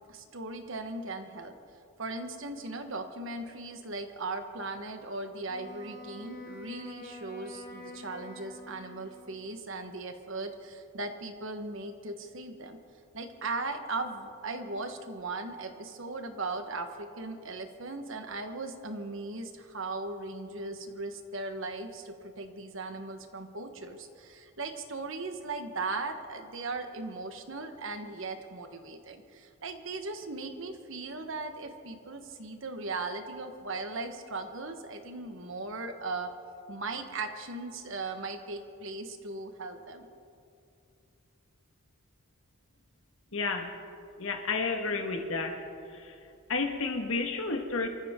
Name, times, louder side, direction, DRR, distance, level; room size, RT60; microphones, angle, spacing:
voice 1, 0.1-1.5 2.0-12.8 13.1-36.3 36.7-40.1, right 3 dB, 60° right, 7 dB, 1.2 m, -38 dB
Wind instrument woodwind instrument, 5.5-9.6, left 2 dB, 40° left, 2.4 m, -47 dB
voice 2, 43.3-43.7 44.2-45.6 46.0-46.1 46.5-47.9, left 4 dB, 65° left, 4 dB, 1.6 m, -31 dB
27.0 x 14.5 x 3.7 m, 2.6 s
head